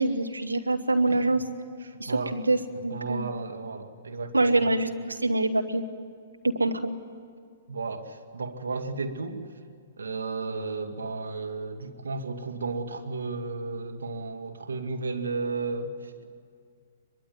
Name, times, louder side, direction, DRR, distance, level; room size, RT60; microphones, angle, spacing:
voice 1, 0.0-1.4 2.0-3.3 4.3-5.8 6.4-6.8, right 2 dB, 90° right, 6 dB, 1.6 m, -25 dB
voice 2, 1.8-2.4 2.9-4.6 7.7-9.4 10.0-15.9, right 3 dB, 75° right, 5 dB, 2.1 m, -33 dB
23.0 x 22.5 x 9.4 m, 2.1 s
figure-of-eight pair, 120°, 0 cm